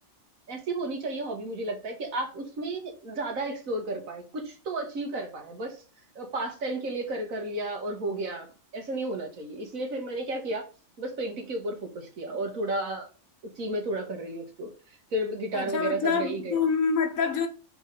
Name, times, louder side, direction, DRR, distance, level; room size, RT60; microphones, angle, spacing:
voice 1, 0.5-5.8 6.2-10.7 11.0-13.1 13.6-16.7, right 2 dB, 85° right, 2.0 m, -33 dB
voice 2, 15.5-17.5, left 5 dB, 90° left, 1.5 m, -26 dB
4.8 x 4.5 x 5.3 m
omnidirectional pair, 1.4 m